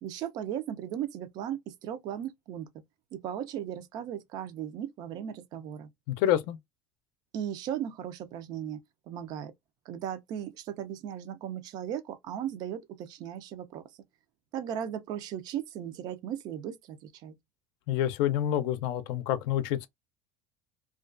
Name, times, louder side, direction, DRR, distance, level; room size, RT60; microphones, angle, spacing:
voice 1, 0.0-2.7 3.1-5.9 7.3-8.8 9.1-9.5 9.9-13.8 14.5-17.3, right 10 dB, 55° right, 0.5 m, -37 dB
voice 2, 6.1-6.6 17.9-19.9, left 11 dB, 75° left, 0.4 m, -27 dB
2.4 x 2.2 x 2.4 m
cardioid pair, 130°, 8 cm